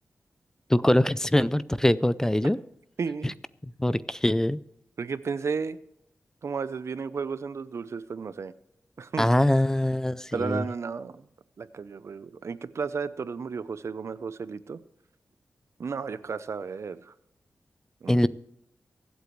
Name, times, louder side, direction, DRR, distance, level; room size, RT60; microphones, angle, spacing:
voice 1, 0.7-2.6 3.8-4.6 9.2-10.6 18.1-18.3, left 1 dB, 10° left, 16 dB, 0.4 m, -23 dB
voice 2, 3.0-3.4 5.0-5.8 6.4-8.5 9.0-9.3 10.3-11.3 11.6-14.8 15.8-17.1 18.0-18.3, right 5 dB, 65° right, 15 dB, 0.7 m, -33 dB
24.0 x 8.2 x 3.2 m, 0.78 s
wide cardioid pair, 80°, 5 cm